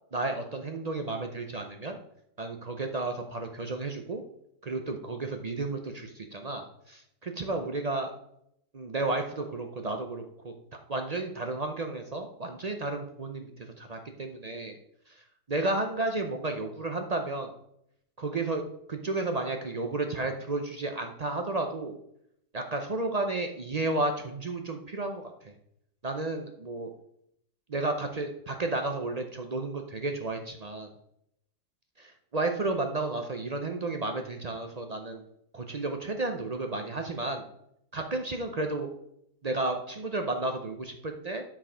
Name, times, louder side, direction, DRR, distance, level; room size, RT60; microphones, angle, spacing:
voice 1, 0.1-2.0 2.4-4.2 4.6-8.1 8.7-10.5 10.9-13.5 13.8-14.8 15.5-17.5 18.2-18.6 18.9-22.0 22.5-25.5 26.0-26.9 27.7-30.9 32.0-35.2 35.5-37.4 37.9-38.9 39.4-41.4, right 2 dB, 50° right, 5 dB, 0.5 m, -32 dB
9.2 x 4.9 x 4.9 m, 0.76 s
omnidirectional pair, 1.6 m